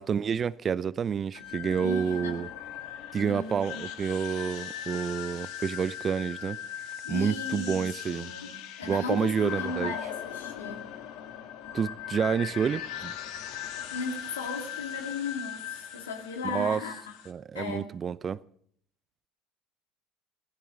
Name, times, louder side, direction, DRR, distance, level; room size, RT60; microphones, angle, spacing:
voice 1, 0.0-2.5 3.1-6.6 7.1-8.3 8.8-10.0 11.7-13.1 16.4-16.8 17.3-18.4, right 7 dB, 35° right, 0.6 m, -29 dB
sound 1, 1.3-17.3, left 10 dB, 70° left, 1.9 m, -39 dB
voice 2, 1.8-2.4 3.2-3.8 7.0-10.9 13.7-17.0 17.5-17.9, left 4 dB, 90° left, 2.3 m, -36 dB
22.0 x 15.5 x 3.8 m
hypercardioid pair, 70°, 0 cm